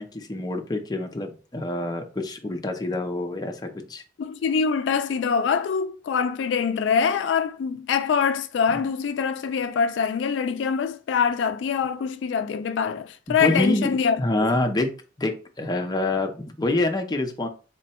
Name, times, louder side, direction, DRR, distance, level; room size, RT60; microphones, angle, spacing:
voice 1, 0.0-4.0 13.3-14.9 15.2-17.5, left 2 dB, 20° left, 0.5 m, -26 dB
voice 2, 4.2-14.2, left 6 dB, 80° left, 0.3 m, -24 dB
3.7 x 2.1 x 4.2 m
head